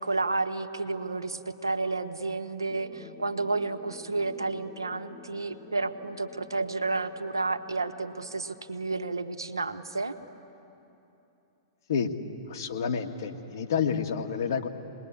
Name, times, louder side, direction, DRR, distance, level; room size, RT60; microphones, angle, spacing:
voice 1, 0.0-10.2, right 3 dB, 85° right, 7 dB, 1.2 m, -31 dB
sound 1, 2.7-8.9, left 6 dB, 15° left, 1.5 m, -50 dB
voice 2, 12.5-14.7, left 6 dB, 60° left, 4 dB, 1.9 m, -29 dB
26.0 x 20.5 x 9.7 m, 2.9 s
figure-of-eight pair, 105°, 2 cm